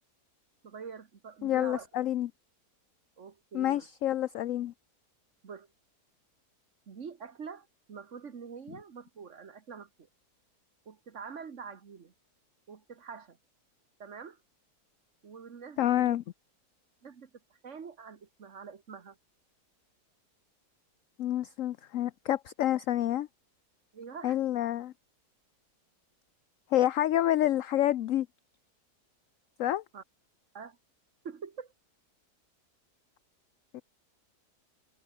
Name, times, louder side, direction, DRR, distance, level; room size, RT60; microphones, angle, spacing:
voice 1, 0.6-1.9 3.2-3.9 5.4-5.7 6.9-9.9 10.8-12.1 12.7-13.4 14.0-14.4 15.2-16.2 17.0-19.2 23.9-24.4 29.9-30.0 30.5-30.8 31.2-31.7, right 6 dB, 50° right, 1.6 m, -45 dB
voice 2, 1.4-2.3 3.5-4.7 15.8-16.2 21.2-23.3 24.2-24.9 26.7-28.3 29.6-29.8 33.7-33.8, left 12 dB, 65° left, 0.9 m, -28 dB
omnidirectional pair, 1.7 m